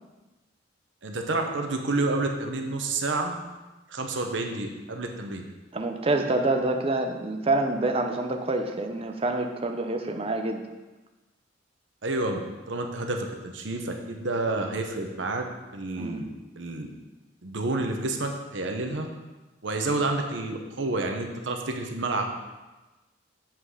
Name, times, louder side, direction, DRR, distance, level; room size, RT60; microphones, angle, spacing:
voice 1, 1.0-3.4 3.9-5.4 12.0-12.4 12.7-15.5 15.7-16.3 16.6-16.9 17.4-19.1 19.6-22.3, right 2 dB, 80° right, 4 dB, 1.0 m, -29 dB
voice 2, 5.7-10.6 16.0-16.3, right 2 dB, 30° right, 4 dB, 0.6 m, -27 dB
7.6 x 5.9 x 4.9 m, 1.1 s
head